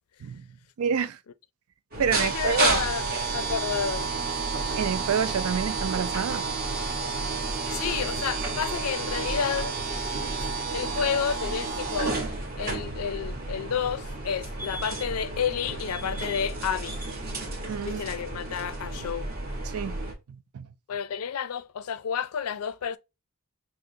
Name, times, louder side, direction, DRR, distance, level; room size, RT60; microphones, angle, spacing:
voice 1, 0.8-1.2 2.0-2.8 4.7-6.5 17.7-18.0 19.7-20.0 20.3-20.7, right 7 dB, 80° right, 0.4 m, -28 dB
sound 1, 1.9-20.1, right 3 dB, 45° right, 1.0 m, -31 dB
voice 2, 2.0-4.1 7.7-9.8 10.4-12.2 12.6-17.0 17.8-19.3 20.9-23.0, left 7 dB, 85° left, 0.4 m, -30 dB
6.0 x 2.0 x 2.6 m
head